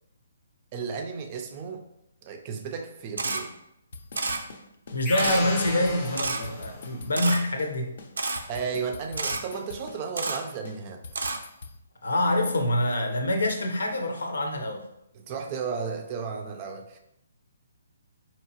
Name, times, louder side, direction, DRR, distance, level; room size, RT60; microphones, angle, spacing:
voice 1, 0.7-1.8 2.2-3.5 8.5-11.0 15.3-17.0, right 5 dB, 25° right, 4 dB, 0.4 m, -34 dB
Camera, 3.2-3.4 4.2-4.4 5.2-5.4 6.2-6.4 7.2-7.4 8.2-8.4 9.2-9.4 10.2-10.4 11.2-11.4, right 3 dB, 90° right, 0.5 m, -29 dB
sound 1, 3.9-5.0 5.3-5.4 5.7-7.3 7.6-7.7 8.0-10.0 10.3-10.4 10.7-11.8, left 3 dB, 55° left, 0.6 m, -43 dB
voice 2, 4.9-7.9 12.0-14.8, left 1 dB, 90° left, 4 dB, 0.8 m, -26 dB
sound 2, 5.0-6.9, left 2 dB, 15° left, 0.6 m, -34 dB
4.6 x 2.9 x 2.8 m, 0.80 s
hypercardioid pair, 160°, 0 cm